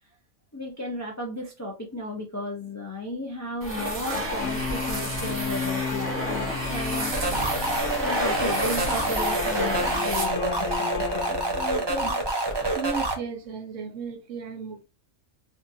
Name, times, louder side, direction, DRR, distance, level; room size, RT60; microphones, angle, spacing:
voice 1, 0.5-7.1 8.0-12.2, left 1 dB, 20° left, 0.5 m, -34 dB
sound 1, 3.6-10.7, equal, 45° right, 1.1 m, -31 dB
sound 2, 4.4-12.1, left 7 dB, 55° left, 0.8 m, -33 dB
sound 3, 7.1-13.1, right 2 dB, 25° right, 0.6 m, -27 dB
voice 2, 12.7-14.8, right 5 dB, 70° right, 1.0 m, -34 dB
3.7 x 2.5 x 2.7 m
omnidirectional pair, 1.4 m